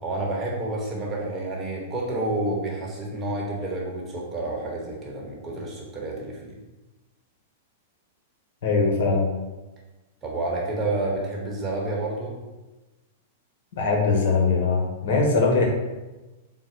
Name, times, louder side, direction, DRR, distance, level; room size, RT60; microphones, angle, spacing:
voice 1, 0.0-6.5 10.2-12.3, right 2 dB, 20° right, -3 dB, 1.1 m, -29 dB
voice 2, 8.6-9.3 13.7-15.7, left 4 dB, 70° left, 0 dB, 1.0 m, -21 dB
3.8 x 2.2 x 4.4 m, 1.1 s
hypercardioid pair, 135°, 0 cm